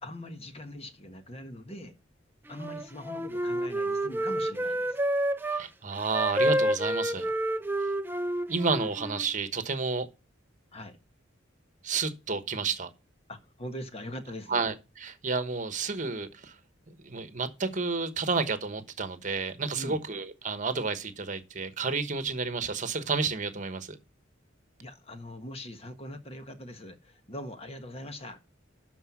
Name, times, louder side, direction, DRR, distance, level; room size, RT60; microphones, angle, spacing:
voice 1, 0.0-2.0 2.5-5.0 10.7-11.0 13.3-14.6 19.7-20.0 24.8-28.4, left 1 dB, 30° left, 1.4 m, -42 dB
Wind instrument woodwind instrument, 2.5-5.6 6.1-9.3, right 1 dB, 10° right, 0.5 m, -29 dB
voice 2, 5.4-7.3 7.8-7.9 8.5-10.1 11.8-12.9 14.5-16.6 16.9-24.0, right 4 dB, 40° right, 1.1 m, -31 dB
12.0 x 4.6 x 6.0 m
head